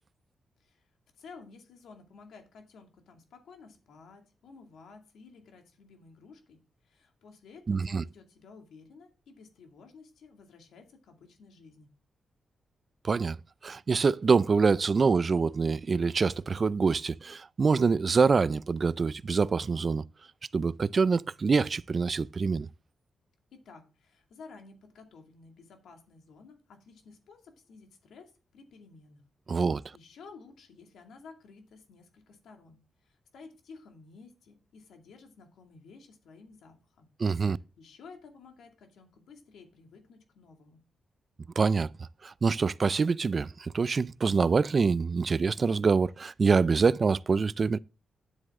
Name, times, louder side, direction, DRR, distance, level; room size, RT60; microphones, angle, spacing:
voice 1, 1.1-11.9 23.5-29.2 29.9-37.1 37.8-40.8, left 4 dB, 90° left, 2.3 m, -53 dB
voice 2, 7.7-8.0 13.0-13.4 13.6-20.0 20.5-22.7 29.5-29.8 37.2-37.6 41.6-41.9 42.2-47.8, right 4 dB, 40° right, 0.4 m, -25 dB
9.9 x 7.7 x 3.7 m
cardioid pair, 95°, 0 cm